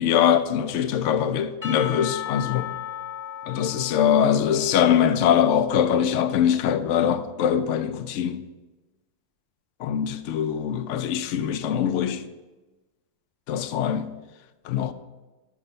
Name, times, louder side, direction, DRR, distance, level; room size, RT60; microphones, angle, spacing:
voice 1, 0.0-2.7 3.5-8.4 9.8-12.3 13.5-14.1 14.6-14.9, left 9 dB, 70° left, 0.7 m, -22 dB
Percussion / Church bell, 1.6-6.0, left 10 dB, 30° left, 0.7 m, -36 dB
6.7 x 6.0 x 7.4 m
omnidirectional pair, 1.8 m